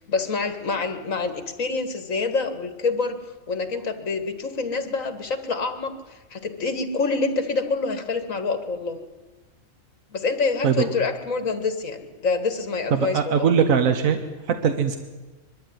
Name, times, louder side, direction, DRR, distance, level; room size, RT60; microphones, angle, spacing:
voice 1, 0.0-3.2 3.5-5.9 6.3-9.0 10.1-13.5, left 4 dB, 70° left, 8 dB, 2.1 m, -26 dB
voice 2, 12.9-14.2 14.5-15.0, right 7 dB, 75° right, 7 dB, 1.5 m, -20 dB
22.0 x 13.0 x 9.5 m, 1.2 s
omnidirectional pair, 1.4 m